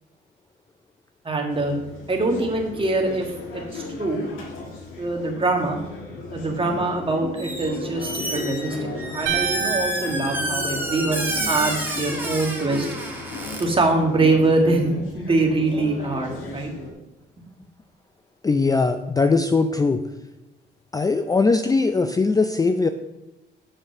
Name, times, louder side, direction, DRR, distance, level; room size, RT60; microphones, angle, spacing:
voice 1, 1.3-1.7 2.1-3.3 3.5-4.2 5.0-5.8 6.3-12.9 13.6-16.7 17.4-17.5, right 2 dB, 25° right, 2 dB, 1.8 m, -23 dB
sound 1, 1.5-16.9, left 3 dB, 85° left, 1.8 m, -36 dB
Squeak, 7.4-7.7 8.0-13.6, right 1 dB, 10° right, 2.0 m, -29 dB
sound 2, 9.3-11.5, right 8 dB, 75° right, 1.1 m, -30 dB
voice 2, 18.4-20.0 20.9-22.9, left 4 dB, 20° left, 8 dB, 0.4 m, -20 dB
7.2 x 5.0 x 5.9 m, 0.98 s
cardioid pair, 90°, 20 cm